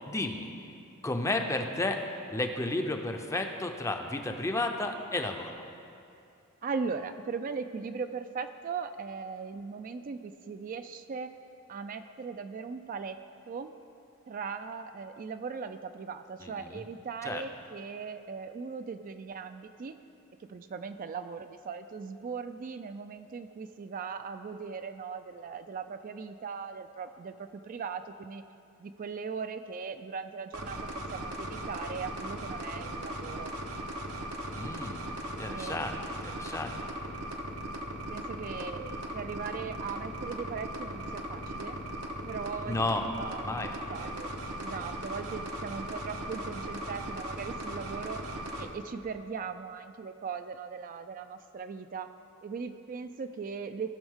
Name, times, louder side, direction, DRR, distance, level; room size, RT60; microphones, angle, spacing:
voice 1, 0.1-0.5 1.0-2.0 2.3-5.6 16.4-16.8 17.2-17.4 34.5-35.1 35.4-36.7 42.7-43.1 43.4-43.7, left 2 dB, 15° left, 5 dB, 0.6 m, -32 dB
voice 2, 6.6-11.3 11.7-13.2 13.5-13.7 14.3-20.0 20.4-28.4 28.8-30.8 31.1-33.6 35.5-35.9 38.1-41.8 42.2-42.8 43.2-43.6 43.9-44.3 44.6-48.2 48.6-52.1 52.4-53.9, right 5 dB, 40° right, 9 dB, 0.3 m, -39 dB
sound 1, 30.5-48.7, right 1 dB, 80° right, 0.9 m, -38 dB
17.5 x 6.2 x 3.6 m, 2.6 s
head